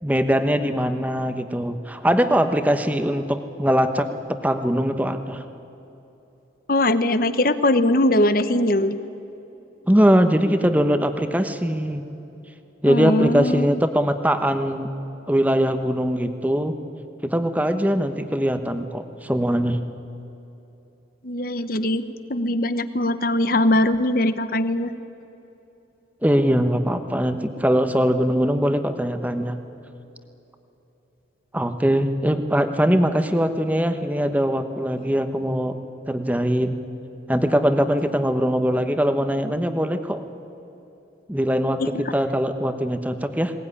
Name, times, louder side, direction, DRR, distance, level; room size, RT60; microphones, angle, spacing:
voice 1, 0.0-4.1 4.4-5.4 9.9-12.0 12.8-14.9 15.3-16.7 17.2-19.8 26.2-29.6 31.5-35.8 36.1-36.8 37.3-40.2 41.3-43.5, equal, 10° right, 8 dB, 1.1 m, -21 dB
voice 2, 6.7-9.0 12.9-13.8 21.2-22.0 22.3-24.9 41.8-41.9, left 1 dB, 50° left, 12 dB, 1.0 m, -21 dB
21.0 x 19.0 x 9.9 m, 3.0 s
head